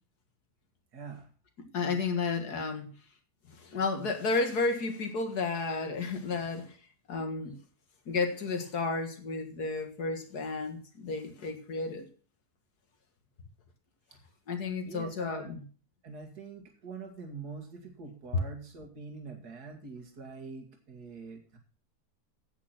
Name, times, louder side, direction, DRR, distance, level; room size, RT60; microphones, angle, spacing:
voice 1, 0.9-1.3 14.8-15.6 16.0-21.6, right 4 dB, 75° right, 3 dB, 2.5 m, -44 dB
voice 2, 1.6-2.9 3.5-6.8 7.1-7.6 8.1-12.1 14.5-15.6, left 3 dB, 75° left, 6 dB, 2.3 m, -32 dB
9.6 x 8.7 x 5.9 m, 0.39 s
omnidirectional pair, 1.7 m